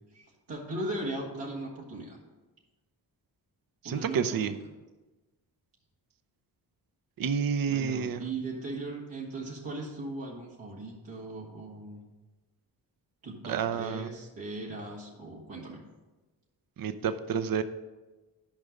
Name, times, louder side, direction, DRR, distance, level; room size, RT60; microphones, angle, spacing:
voice 1, 0.1-2.2 3.8-4.6 7.7-12.0 13.2-15.8, right 2 dB, 75° right, -5 dB, 1.9 m, -38 dB
voice 2, 3.8-4.5 7.2-8.2 13.5-14.1 16.8-17.6, right 7 dB, 50° right, 11 dB, 0.7 m, -29 dB
10.5 x 5.2 x 5.1 m, 1.2 s
supercardioid pair, 45°, 44 cm